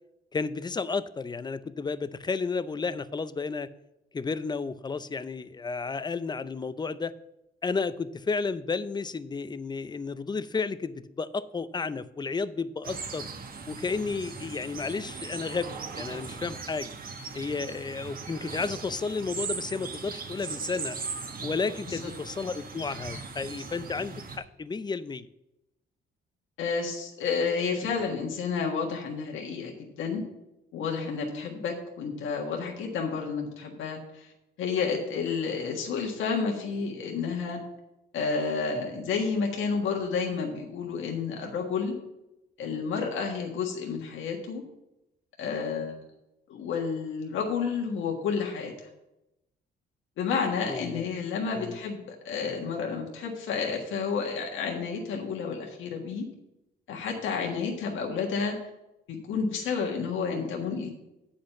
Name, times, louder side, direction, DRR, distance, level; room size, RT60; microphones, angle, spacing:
voice 1, 0.3-3.7 4.1-7.1 7.6-13.3 13.7-16.9 17.3-21.0 21.4-25.3 50.7-51.1 51.5-51.8, left 4 dB, 20° left, 14 dB, 0.5 m, -32 dB
sound 1, 12.8-24.4, right 5 dB, 45° right, 1.3 m, -39 dB
voice 2, 26.6-30.2 30.7-34.3 34.6-37.6 38.1-41.9 42.6-44.6 45.4-45.9 46.5-48.7 50.2-56.2 56.9-58.7 59.1-60.9, left 5 dB, 80° left, 1 dB, 1.6 m, -30 dB
8.4 x 5.2 x 7.1 m, 0.91 s
cardioid pair, 90°, 20 cm